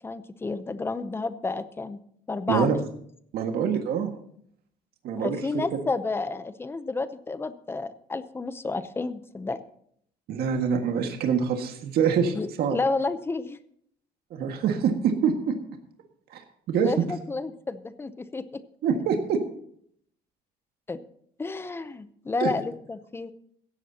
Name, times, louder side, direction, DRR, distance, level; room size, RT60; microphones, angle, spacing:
voice 1, 0.0-2.0 2.3-2.8 5.1-9.6 12.3-13.6 16.8-18.6 20.9-21.0 21.4-23.3, left 3 dB, 15° left, 13 dB, 0.6 m, -31 dB
voice 2, 3.3-4.1 5.0-5.4 10.3-12.8 14.3-15.6 16.3-16.4 16.7-16.9 18.8-19.4 22.4-22.5, right 7 dB, 70° right, 4 dB, 1.7 m, -25 dB
16.5 x 14.0 x 2.8 m, 0.66 s
cardioid pair, 175°, 17 cm